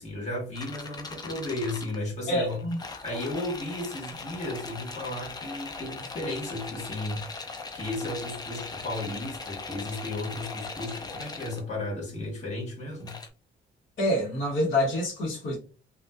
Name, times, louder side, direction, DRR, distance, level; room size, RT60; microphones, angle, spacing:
voice 1, 0.0-2.6 3.0-13.2, left 1 dB, 35° left, 1.2 m, -34 dB
sound 1, 0.5-2.0 2.4-11.6 13.0-13.3, left 4 dB, 20° left, 0.4 m, -40 dB
voice 2, 2.3-2.8 14.0-15.6, left 1 dB, 70° left, 1.2 m, -26 dB
2.4 x 2.3 x 2.2 m
cardioid pair, 90°, 20 cm